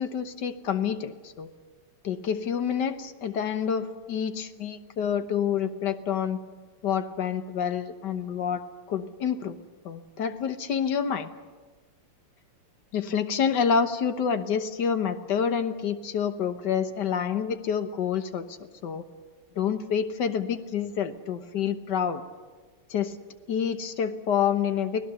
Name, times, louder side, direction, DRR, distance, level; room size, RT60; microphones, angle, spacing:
voice 1, 0.0-1.5 2.0-6.4 6.8-8.6 8.9-9.6 9.8-11.3 12.9-19.0 19.6-22.2 22.9-23.2 23.5-25.1, left 7 dB, 60° left, 10 dB, 1.5 m, -28 dB
29.0 x 18.5 x 6.9 m, 1.4 s
omnidirectional pair, 2.4 m